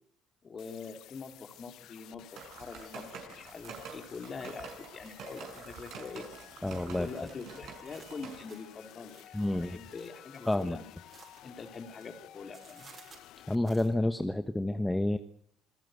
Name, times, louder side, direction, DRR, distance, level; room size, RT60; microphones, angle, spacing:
voice 1, 0.4-6.3 7.0-10.8 11.4-12.9, left 5 dB, 35° left, 7 dB, 3.7 m, -44 dB
sound 1, 0.6-13.5, left 13 dB, 70° left, 1.0 m, -54 dB
sound 2, 2.4-8.4, right 5 dB, 65° right, 6.1 m, -47 dB
sound 3, 5.1-12.2 12.5-13.9, right 5 dB, 40° right, 6.5 m, -59 dB
voice 2, 6.6-7.1 9.3-9.8 10.5-10.8 13.5-15.2, left 1 dB, 10° left, 9 dB, 1.2 m, -29 dB
26.5 x 15.5 x 8.1 m, 0.64 s
cardioid pair, 95°, 0 cm